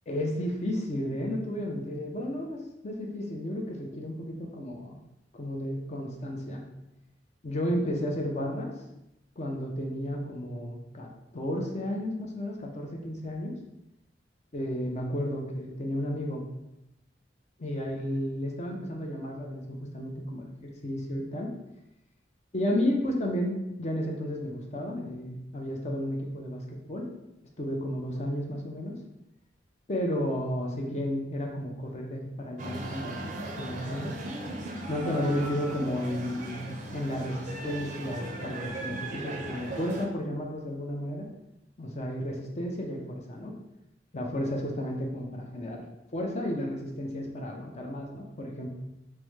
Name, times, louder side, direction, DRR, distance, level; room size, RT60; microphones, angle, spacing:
voice 1, 0.1-5.0 5.3-6.6 7.4-8.7 9.4-13.6 14.5-16.4 17.6-21.5 22.5-27.1 27.6-29.0 29.9-33.2 33.6-34.2 34.9-36.6 36.9-41.3 41.8-43.6 44.1-45.8 46.1-48.7, equal, 40° left, 1 dB, 0.5 m, -32 dB
sound 1, 32.6-40.1, right 2 dB, 45° right, 0.5 m, -37 dB
4.6 x 2.1 x 3.1 m, 0.89 s
head